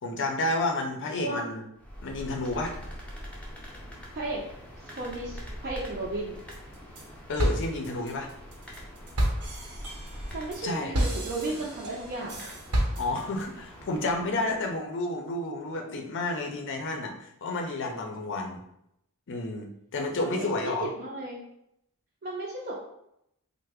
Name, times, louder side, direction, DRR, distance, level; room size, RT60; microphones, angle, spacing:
voice 1, 0.0-1.6 2.0-2.8 7.3-8.3 10.6-10.9 12.9-18.6 19.3-20.9, left 2 dB, 55° left, 3 dB, 0.5 m, -31 dB
sound 1, 1.8-14.8, equal, 5° left, 0.5 m, -44 dB
voice 2, 4.9-6.4 10.3-12.5 20.2-21.4 22.2-22.8, right 2 dB, 45° right, -4 dB, 0.5 m, -34 dB
sound 2, 6.5-7.1 7.4-13.4, equal, 85° right, 0.9 m, -30 dB
3.2 x 2.0 x 3.4 m, 0.78 s
head